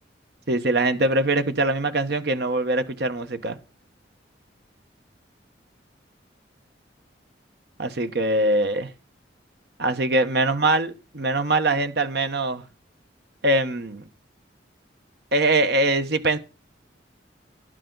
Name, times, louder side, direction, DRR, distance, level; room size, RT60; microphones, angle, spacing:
voice 1, 0.5-3.6 7.8-8.9 9.8-12.6 13.4-14.1 15.3-16.4, right 2 dB, 60° right, 1.1 m, -22 dB
12.5 x 11.0 x 3.9 m
head